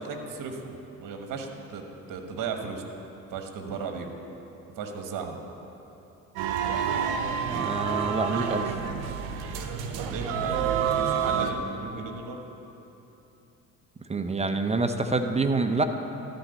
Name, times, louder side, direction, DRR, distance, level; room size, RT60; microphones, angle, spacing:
voice 1, 0.0-2.9 3.3-4.1 4.8-5.4 10.0-12.4, right 5 dB, 55° right, 4 dB, 1.3 m, -36 dB
sound 1, 6.4-11.5, right 7 dB, 70° right, 0.8 m, -28 dB
voice 2, 7.5-8.8 14.1-15.8, right 3 dB, 15° right, 7 dB, 0.7 m, -27 dB
13.0 x 4.4 x 8.1 m, 2.9 s
hypercardioid pair, 55°, 39 cm